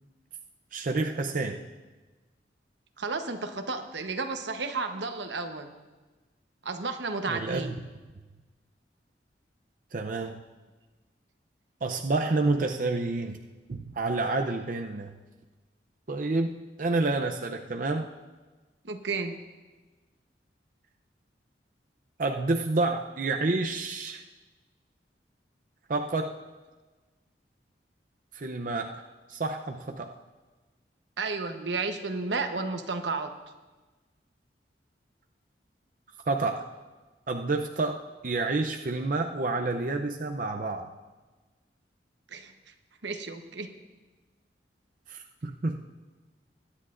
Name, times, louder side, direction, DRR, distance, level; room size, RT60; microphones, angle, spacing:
voice 1, 0.7-1.6 7.3-7.8 9.9-10.4 11.8-13.4 13.7-15.1 16.1-18.1 22.2-24.2 25.9-26.4 28.3-29.0 29.3-30.1 36.3-36.6 37.3-40.9 45.1-45.9, right 3 dB, 50° right, 3 dB, 0.5 m, -29 dB
voice 2, 3.0-5.7 6.6-7.8 18.8-19.3 31.2-33.3 42.3-42.5 43.0-43.7, right 4 dB, 85° right, 6 dB, 1.0 m, -32 dB
21.5 x 9.9 x 2.5 m, 1.3 s
head